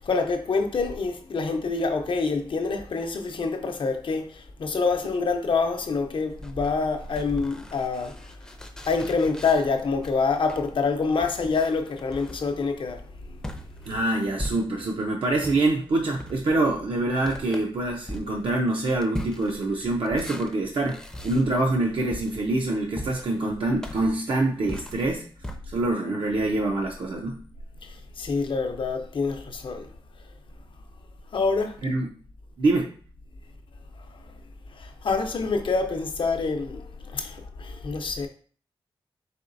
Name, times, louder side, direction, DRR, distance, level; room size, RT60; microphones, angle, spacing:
voice 1, 0.0-8.2 8.9-13.0 27.8-29.9 31.3-31.8 34.8-38.3, left 4 dB, 65° left, 0.6 m, -26 dB
sound 1, 6.3-15.0 15.4-25.6, equal, 5° left, 0.5 m, -40 dB
voice 2, 13.9-25.3 25.7-27.4 31.8-32.1 32.6-32.9, right 2 dB, 65° right, 0.6 m, -25 dB
4.2 x 3.8 x 2.5 m
wide cardioid pair, 115°, 9 cm